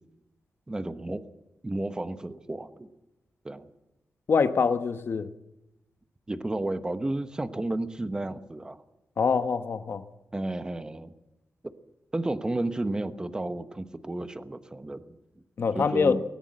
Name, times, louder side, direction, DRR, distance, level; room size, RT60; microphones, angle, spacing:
voice 1, 0.7-1.2 1.6-2.9 3.4-3.6 6.3-8.8 10.3-11.1 11.6-11.7 12.1-15.2 15.7-16.2, right 2 dB, 15° right, 1.1 m, -32 dB
voice 2, 4.3-5.3 9.2-10.0 15.6-16.2, left 5 dB, 50° left, 1.1 m, -24 dB
19.0 x 19.0 x 7.7 m
wide cardioid pair, 140°, 5 cm